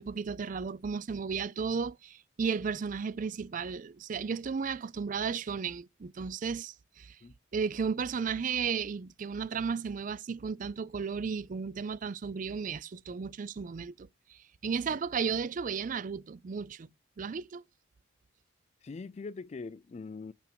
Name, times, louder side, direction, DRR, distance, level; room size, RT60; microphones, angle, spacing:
voice 1, 0.0-7.2 7.5-16.9 17.2-17.6, right 5 dB, 40° right, 0.4 m, -34 dB
voice 2, 18.8-20.3, left 4 dB, 35° left, 0.3 m, -42 dB
5.9 x 4.4 x 5.2 m
head